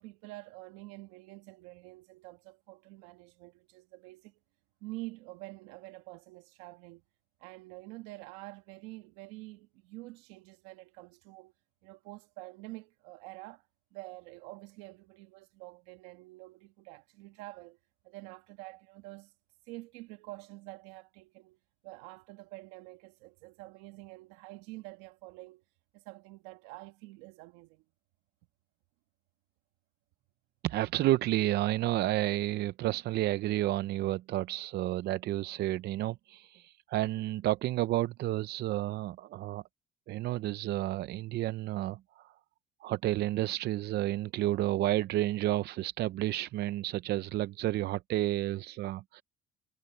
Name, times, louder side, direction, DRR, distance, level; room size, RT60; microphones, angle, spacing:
voice 1, 0.0-4.4 4.8-7.0 7.4-11.5 11.8-13.6 13.9-17.8 18.0-19.3 19.7-21.6 21.8-25.6 25.9-27.8, right 21 dB, 85° right, 1.4 m, -47 dB
voice 2, 30.6-39.6 40.1-42.3 42.8-49.2, right 15 dB, 60° right, 0.6 m, -31 dB
supercardioid pair, 85°, 19 cm